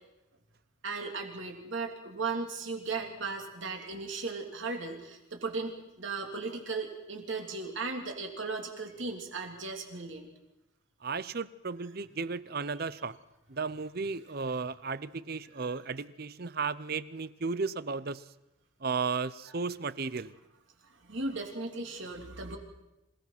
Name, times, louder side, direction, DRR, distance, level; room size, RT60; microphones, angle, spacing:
voice 1, 0.8-10.3 15.6-15.7 20.8-22.6, right 3 dB, 60° right, 3 dB, 3.2 m, -36 dB
voice 2, 11.0-13.2 13.5-18.3 18.8-20.3, right 4 dB, 45° right, 17 dB, 0.7 m, -34 dB
26.5 x 17.5 x 6.0 m, 0.93 s
head